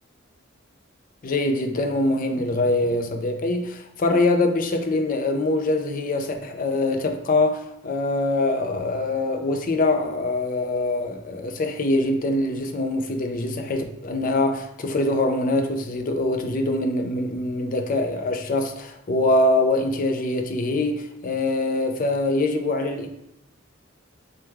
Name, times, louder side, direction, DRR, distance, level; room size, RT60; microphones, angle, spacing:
voice 1, 1.2-23.1, left 2 dB, 45° left, 0.4 m, -24 dB
4.4 x 2.2 x 3.4 m
head